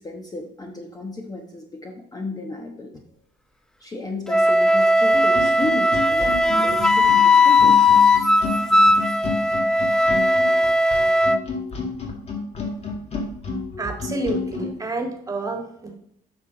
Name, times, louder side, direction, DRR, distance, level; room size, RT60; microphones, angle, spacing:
voice 1, 0.0-3.0 3.8-8.2 8.9-9.3, left 2 dB, 20° left, 1 dB, 1.1 m, -34 dB
Wind instrument woodwind instrument, 4.3-11.4, left 2 dB, 5° left, 0.5 m, -17 dB
sound 1, 5.1-14.7, left 4 dB, 40° left, 2.2 m, -30 dB
voice 2, 13.8-16.0, right 2 dB, 20° right, 4 dB, 1.7 m, -29 dB
9.0 x 5.9 x 3.9 m, 0.72 s
cardioid pair, 110°, 17 cm